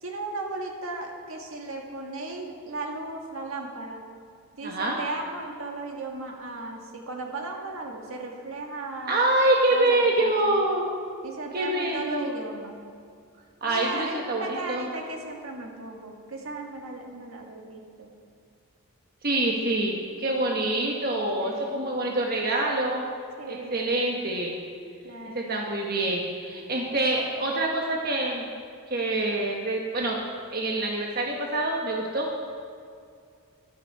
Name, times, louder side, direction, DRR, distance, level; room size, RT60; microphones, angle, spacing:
voice 1, 0.0-4.0 4.5-9.2 9.7-10.6 11.2-12.8 13.6-18.1 21.4-22.0 23.4-23.9 25.0-25.6, right 2 dB, 70° right, 1 dB, 1.7 m, -36 dB
voice 2, 4.6-5.0 9.1-10.9 11.5-12.3 13.6-14.9 19.2-23.0 23.5-24.6 25.3-28.5 28.9-30.2 30.5-32.3, right 2 dB, 45° right, -1 dB, 1.2 m, -26 dB
13.0 x 11.5 x 4.7 m, 2.3 s
head